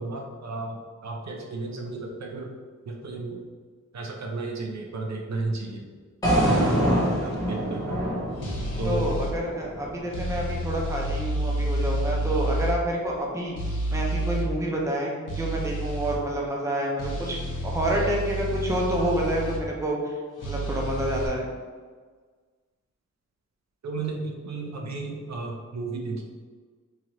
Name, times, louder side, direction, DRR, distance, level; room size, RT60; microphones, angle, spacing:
voice 1, 0.0-2.5 2.9-3.4 3.9-5.9 6.5-8.0 8.8-9.1 23.8-26.2, right 3 dB, 60° right, 1 dB, 0.5 m, -33 dB
sound 1, 6.2-10.3, equal, 10° left, 0.8 m, -25 dB
sound 2, 8.4-9.3 10.1-12.8 13.6-14.5 15.3-16.2 17.0-19.6 20.4-21.3, right 1 dB, 85° left, 0.7 m, -29 dB
voice 2, 8.8-17.4 17.6-21.5, right 1 dB, 10° right, -2 dB, 0.5 m, -28 dB
3.1 x 2.4 x 2.9 m, 1.5 s
wide cardioid pair, 140°, 30 cm